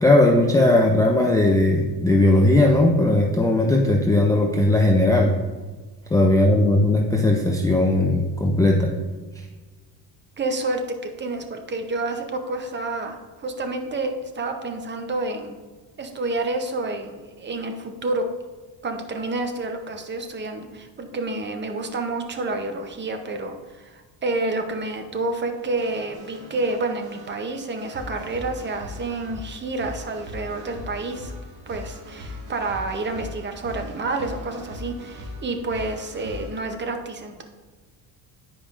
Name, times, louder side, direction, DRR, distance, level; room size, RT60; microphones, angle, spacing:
voice 1, 0.0-5.3 6.1-8.9, left 1 dB, 10° left, 1 dB, 0.4 m, -18 dB
voice 2, 10.4-15.6 16.0-18.3 18.8-31.3 31.7-37.4, right 2 dB, 25° right, 5 dB, 0.7 m, -29 dB
sound 1, 25.6-36.6, left 2 dB, 60° right, 1.8 m, -39 dB
10.0 x 4.9 x 2.5 m, 1.3 s
cardioid pair, 125°, 42 cm